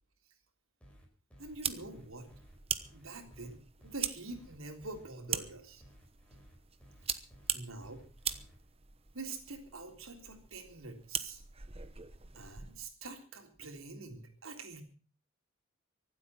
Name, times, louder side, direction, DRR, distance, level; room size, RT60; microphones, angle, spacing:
sound 1, 0.8-8.6, equal, 5° left, 4.8 m, -58 dB
voice 1, 1.4-2.3 2.9-5.8 7.5-8.0 9.1-11.4 12.3-14.8, right 3 dB, 90° right, 5 dB, 3.6 m, -45 dB
sound 2, 1.5-12.9, right 8 dB, 30° right, 1.0 m, -42 dB
24.5 x 8.3 x 5.8 m, 0.38 s
head